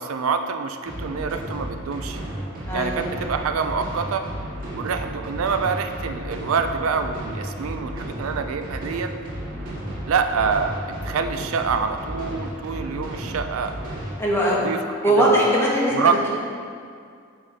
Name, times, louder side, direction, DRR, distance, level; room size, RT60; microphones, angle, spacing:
voice 1, 0.0-2.2 2.7-4.3 4.7-9.1 10.1-10.8 11.0-13.7 14.5-14.8 15.1-15.5 15.9-16.3, right 5 dB, 90° right, 7 dB, 0.4 m, -26 dB
sound 1, 0.9-14.1, equal, 40° right, 1.8 m, -33 dB
voice 2, 2.7-3.3 9.5-9.8 14.2-14.6 15.0-16.3, equal, 10° left, -5 dB, 1.3 m, -21 dB
8.7 x 5.5 x 3.4 m, 2.2 s
head